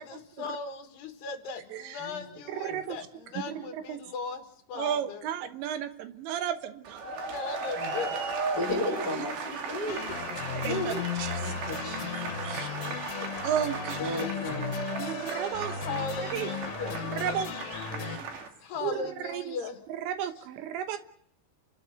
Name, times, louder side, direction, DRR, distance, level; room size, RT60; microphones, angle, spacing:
voice 1, 0.0-5.2 7.3-8.6 12.6-12.8 13.2-13.4 13.8-13.9 14.2-14.3 15.8-17.3 18.1-18.2 18.6-19.8, left 5 dB, 65° left, 5 dB, 3.8 m, -38 dB
voice 2, 1.7-2.1 2.5-3.0 3.5-4.0 4.7-7.1 9.2-9.4 10.5-10.9 11.2-11.5 12.4-12.7 13.4-14.3 15.0-16.0 16.3-16.5 16.8-17.6 18.0-18.2 18.8-19.6 19.9-21.0, right 9 dB, 75° right, 9 dB, 3.3 m, -34 dB
sound 1, 6.8-18.5, right 4 dB, 55° right, 4.1 m, -36 dB
voice 3, 8.6-10.3 10.7-10.9 11.4-12.4 14.0-15.0 17.9-18.4 18.7-18.9, left 1 dB, 20° left, 3 dB, 4.7 m, -35 dB
sound 2, 9.9-18.2, left 8 dB, 85° left, 3.6 m, -36 dB
30.0 x 12.0 x 9.5 m, 0.66 s
omnidirectional pair, 5.4 m